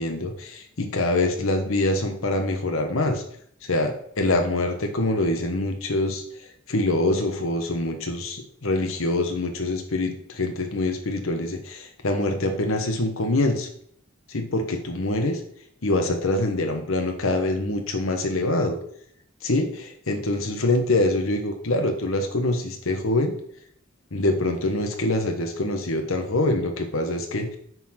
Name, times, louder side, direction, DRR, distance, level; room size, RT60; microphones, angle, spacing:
voice 1, 0.0-3.2 3.6-6.2 6.7-13.7 14.3-15.4 15.8-18.8 19.4-23.3 24.1-27.5, left 2 dB, 80° left, 4 dB, 1.1 m, -25 dB
9.1 x 4.2 x 5.7 m, 0.65 s
head